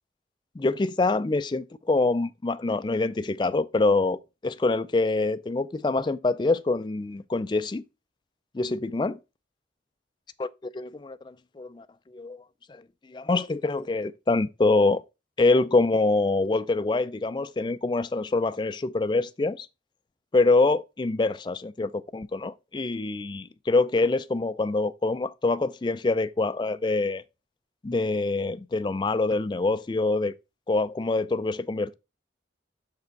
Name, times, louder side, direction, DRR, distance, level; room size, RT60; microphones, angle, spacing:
voice 1, 0.6-7.8 8.5-9.2 10.4-12.4 12.7-12.8 13.1-15.0 15.4-19.7 20.3-27.2 27.8-30.3 30.7-31.9, left 3 dB, 25° left, 0.3 m, -25 dB
6.2 x 4.8 x 4.5 m
head